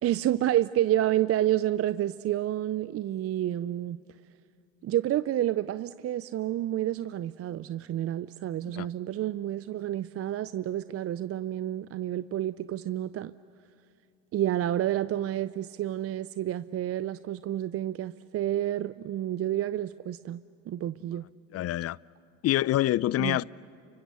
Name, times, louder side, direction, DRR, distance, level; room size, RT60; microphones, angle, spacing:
voice 1, 0.0-4.0 4.8-13.3 14.3-20.4 20.7-21.3 23.2-23.4, right 12 dB, 45° right, 0.5 m, -29 dB
voice 2, 21.5-22.0 22.4-23.4, left 14 dB, 45° left, 0.5 m, -26 dB
30.0 x 25.0 x 6.8 m
hypercardioid pair, 75°, 35 cm